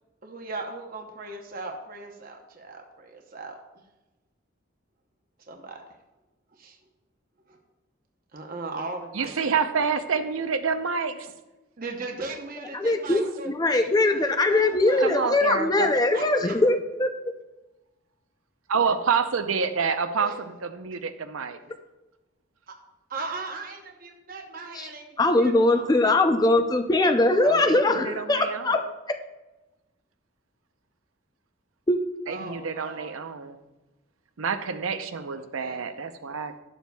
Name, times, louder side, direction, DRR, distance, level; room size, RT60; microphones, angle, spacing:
voice 1, 0.2-3.6 5.5-5.8 6.6-6.8 7.5-7.6 8.3-9.8 11.8-15.2 15.9-16.5 20.2-20.3 23.1-25.0 25.4-25.9 32.3-33.2 35.4-35.8, right 3 dB, 45° right, 2 dB, 0.8 m, -38 dB
voice 2, 9.1-11.3 13.2-13.3 15.0-15.9 18.7-21.6 27.4-28.9 32.3-33.6 34.4-36.5, right 5 dB, 90° right, 9 dB, 0.6 m, -28 dB
voice 3, 12.7-17.1 24.7-24.9 25.2-28.8 31.9-32.0, left 2 dB, 20° left, 6 dB, 0.4 m, -21 dB
12.0 x 7.0 x 2.3 m, 1.1 s
head